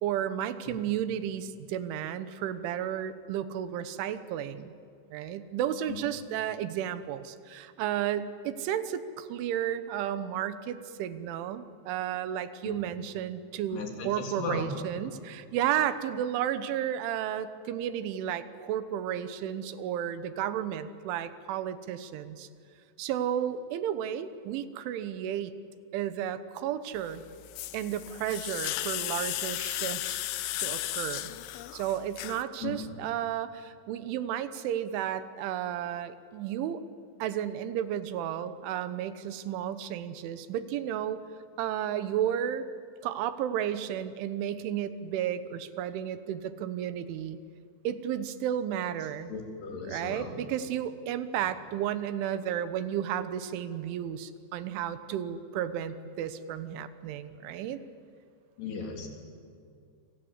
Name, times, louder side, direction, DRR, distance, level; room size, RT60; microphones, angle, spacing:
voice 1, 0.0-4.7 5.1-22.5 23.0-25.5 25.9-27.2 27.7-30.3 30.6-31.3 31.7-36.8 37.2-41.2 41.6-42.7 43.0-47.4 47.8-49.3 49.8-57.8, right 10 dB, 80° right, 12 dB, 3.5 m, -33 dB
voice 2, 13.7-14.7 32.6-32.8 49.3-50.3 58.6-59.1, left 4 dB, 60° left, 2 dB, 5.3 m, -36 dB
sound 1, 27.0-32.4, left 16 dB, 85° left, 3.3 m, -35 dB
28.0 x 26.5 x 8.1 m, 2.4 s
omnidirectional pair, 5.5 m